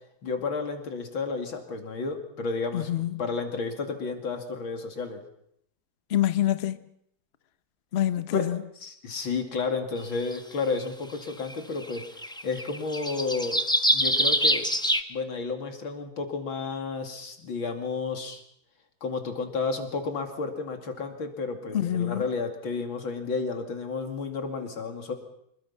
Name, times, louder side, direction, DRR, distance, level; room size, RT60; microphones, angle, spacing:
voice 1, 0.2-5.2 8.3-8.5 8.8-12.0 12.4-13.6 13.9-14.7 15.1-18.4 19.0-25.1, left 4 dB, 85° left, 3.3 m, -32 dB
voice 2, 2.7-3.2 6.1-6.8 7.9-8.6 21.7-22.3, left 12 dB, 45° left, 0.9 m, -26 dB
sound 1, 10.3-10.4 11.5-11.6 11.8-15.0, equal, 5° left, 0.6 m, -25 dB
26.5 x 21.5 x 5.7 m
omnidirectional pair, 2.1 m